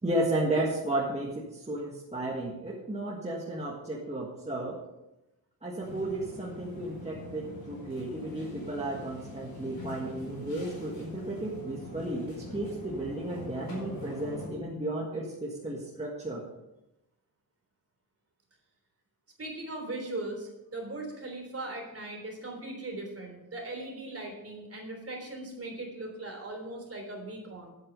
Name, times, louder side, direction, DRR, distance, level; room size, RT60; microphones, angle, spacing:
voice 1, 0.0-4.8 5.6-16.4, right 1 dB, 20° right, -4 dB, 1.6 m, -33 dB
sound 1, 5.8-14.5, left 2 dB, 65° left, 4.7 m, -43 dB
voice 2, 19.4-27.7, right 2 dB, 40° right, 1 dB, 3.4 m, -39 dB
11.5 x 8.1 x 5.3 m, 0.95 s
wide cardioid pair, 150°, 37 cm